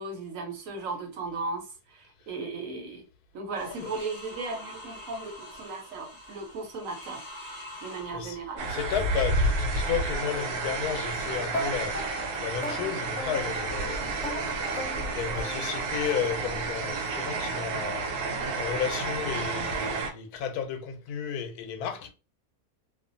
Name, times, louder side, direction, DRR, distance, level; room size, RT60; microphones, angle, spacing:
voice 1, 0.0-3.0 3.3-7.3 7.8-8.7, right 3 dB, 65° right, 1.1 m, -36 dB
sound 1, 3.5-10.7 11.6-12.2, left 1 dB, 10° right, 0.9 m, -46 dB
voice 2, 7.9-8.4 8.7-14.2 14.5-22.1, left 8 dB, 85° left, 1.1 m, -33 dB
sound 2, 8.6-20.1, right 3 dB, 90° right, 1.2 m, -30 dB
sound 3, 11.5-16.1, left 2 dB, 65° left, 0.9 m, -38 dB
2.5 x 2.4 x 2.5 m
omnidirectional pair, 1.6 m